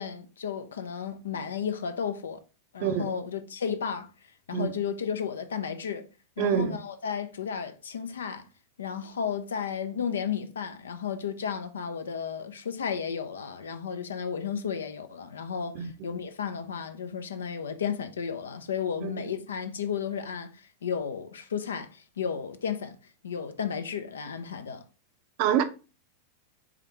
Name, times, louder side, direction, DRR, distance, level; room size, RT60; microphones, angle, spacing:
voice 1, 0.0-2.4 2.7-4.1 4.5-6.1 6.4-8.4 8.8-23.0 23.2-24.8, left 7 dB, 65° left, 0.5 m, -33 dB
voice 2, 2.8-3.1 4.5-4.7 6.4-6.8 15.7-15.9 19.0-19.1 25.4-25.6, right 9 dB, 45° right, 0.6 m, -26 dB
4.9 x 3.6 x 2.9 m
figure-of-eight pair, 90°, 0 cm